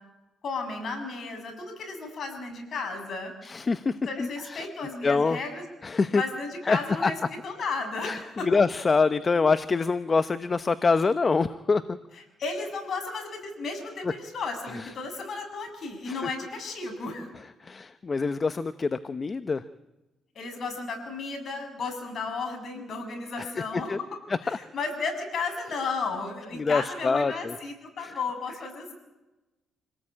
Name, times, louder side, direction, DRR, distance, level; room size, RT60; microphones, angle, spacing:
voice 1, 0.4-3.3 4.0-5.6 6.1-7.2 7.4-8.5 12.4-17.3 20.4-24.0 24.4-28.9, left 4 dB, 50° left, 4 dB, 7.3 m, -34 dB
voice 2, 3.4-4.7 5.0-5.4 5.8-6.2 6.7-7.1 8.0-8.2 8.4-12.0 14.8-14.9 16.1-16.3 17.6-19.6 23.4-23.5 23.7-24.0 24.3-24.6 26.5-27.6 28.0-28.1, left 4 dB, 35° left, 12 dB, 0.9 m, -25 dB
27.5 x 18.5 x 8.7 m, 1.0 s
cardioid pair, 90°, 0 cm